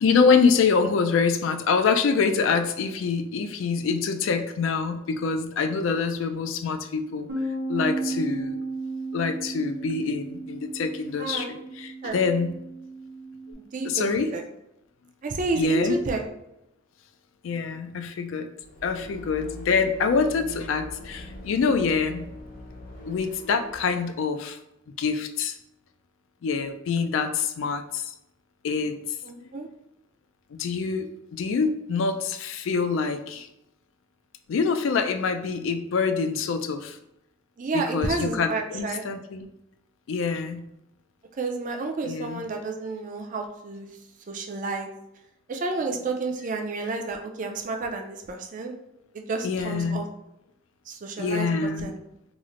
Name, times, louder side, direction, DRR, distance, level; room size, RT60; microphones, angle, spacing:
voice 1, 0.0-7.3 7.7-8.6 9.1-12.6 13.8-14.3 15.5-16.0 17.4-18.5 18.8-22.3 23.1-24.6 25.0-25.6 26.4-28.1 28.6-29.0 30.5-33.5 34.5-37.0 37.7-39.5 40.1-40.6 42.0-42.5 49.4-50.1 51.2-51.9, left 5 dB, 70° left, 8 dB, 0.3 m, -25 dB
Bass guitar, 7.3-13.5, right 2 dB, 70° right, 0.8 m, -34 dB
voice 2, 11.2-11.5 12.0-12.2 13.6-14.4 15.2-16.2 29.2-29.7 37.6-39.0 41.4-43.9 44.3-44.9 45.5-48.7 49.1-50.0 50.9-51.5 51.8-52.0, right 3 dB, 40° right, 3 dB, 0.4 m, -30 dB
sound 1, 18.6-23.8, left 2 dB, 45° left, 0.7 m, -42 dB
3.0 x 2.0 x 3.7 m, 0.84 s
head